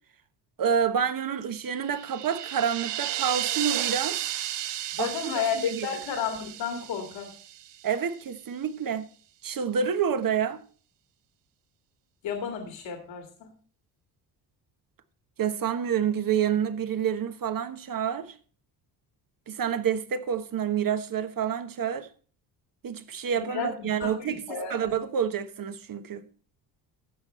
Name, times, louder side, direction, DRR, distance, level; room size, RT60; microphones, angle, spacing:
voice 1, 0.6-4.2 5.0-5.9 7.8-9.1 9.4-10.6 15.4-18.3 19.5-22.1 22.8-24.4 24.7-26.2, right 8 dB, 40° right, 1.2 m, -28 dB
sound 1, 1.7-7.9, right 13 dB, 60° right, 0.8 m, -33 dB
voice 2, 5.0-7.3 12.2-13.5 23.4-24.8, left 7 dB, 60° left, 2.2 m, -32 dB
14.5 x 6.1 x 4.3 m
hypercardioid pair, 60°, 49 cm